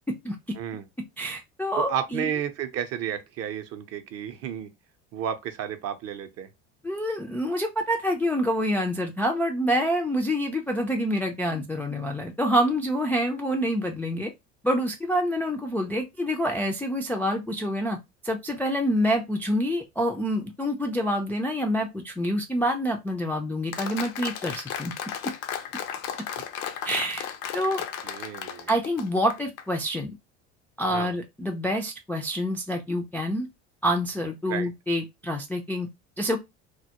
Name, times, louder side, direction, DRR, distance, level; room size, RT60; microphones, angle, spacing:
voice 1, 1.2-2.3 6.8-14.3 14.6-18.0 18.2-24.9 26.8-27.2 27.5-27.8 28.7-30.1 30.8-33.5 33.8-35.9 36.2-36.4, equal, 5° left, 0.3 m, -27 dB
voice 2, 1.8-4.7 5.1-6.5 28.0-28.7 30.9-31.2 34.5-34.7, right 9 dB, 45° right, 0.6 m, -32 dB
Applause, 23.7-29.6, left 8 dB, 65° left, 0.6 m, -34 dB
2.2 x 2.0 x 2.8 m
hypercardioid pair, 75°, 36 cm